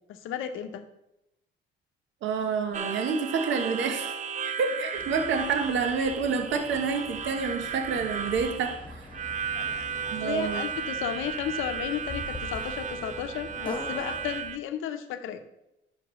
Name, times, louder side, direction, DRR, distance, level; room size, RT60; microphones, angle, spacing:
voice 1, 0.1-0.8 9.5-15.5, left 9 dB, 90° left, 8 dB, 0.7 m, -34 dB
voice 2, 2.2-4.1 4.6-9.1 10.1-10.6, right 5 dB, 70° right, 5 dB, 0.9 m, -28 dB
Harmonica, 2.7-14.6, right 6 dB, 35° right, 0.5 m, -35 dB
sound 1, 4.9-14.5, left 2 dB, 25° left, 1.4 m, -43 dB
11.0 x 5.9 x 3.0 m, 0.89 s
cardioid pair, 90°, 20 cm